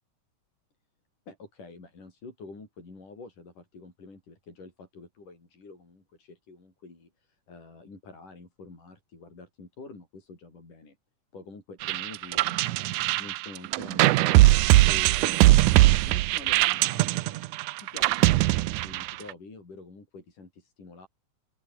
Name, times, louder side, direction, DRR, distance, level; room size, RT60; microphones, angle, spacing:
voice 1, 1.3-11.0 11.3-17.4 17.8-21.1, left 3 dB, 65° left, 9.3 m, -47 dB
sound 1, 11.8-19.3, right 18 dB, 75° right, 2.0 m, -21 dB
open air
omnidirectional pair, 3.9 m